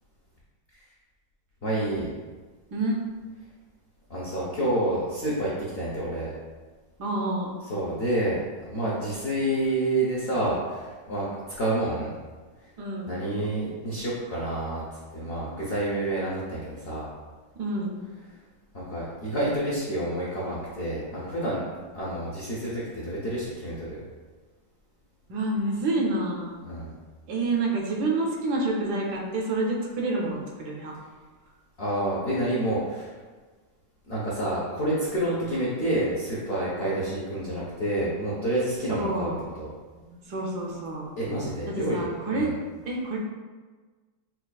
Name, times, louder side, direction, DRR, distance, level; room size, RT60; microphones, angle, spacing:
voice 1, 1.6-2.1 4.1-6.3 7.7-11.3 11.6-12.1 12.6-12.7 13.1-14.8 15.1-17.1 18.7-21.6 21.9-24.0 26.6-26.9 31.8-33.1 34.1-39.3 39.6-39.7 41.2-42.5, right 1 dB, 65° left, -7 dB, 0.6 m, -28 dB
voice 2, 7.0-7.5 12.8-13.2 17.5-18.0 25.3-26.6 27.3-30.9 35.2-35.8 38.9-39.5 39.9-41.1 41.7-42.5 42.8-43.2, right 2 dB, 70° right, -2 dB, 1.1 m, -28 dB
5.7 x 2.3 x 2.3 m, 1.4 s
omnidirectional pair, 1.9 m